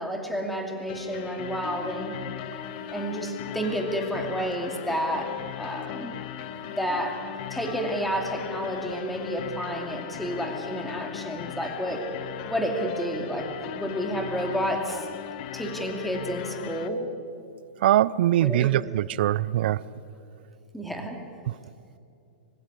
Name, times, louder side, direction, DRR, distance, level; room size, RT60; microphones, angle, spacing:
voice 1, 0.0-2.1 2.9-6.2 6.8-12.0 12.5-15.1 15.5-17.1 18.4-18.9 20.7-21.2, equal, ahead, 3 dB, 2.6 m, -30 dB
sound 1, 0.9-16.9, left 11 dB, 50° left, 1.3 m, -37 dB
voice 2, 17.8-19.8, right 13 dB, 65° right, 19 dB, 0.6 m, -22 dB
25.5 x 16.0 x 9.9 m, 2.6 s
hypercardioid pair, 145°, 6 cm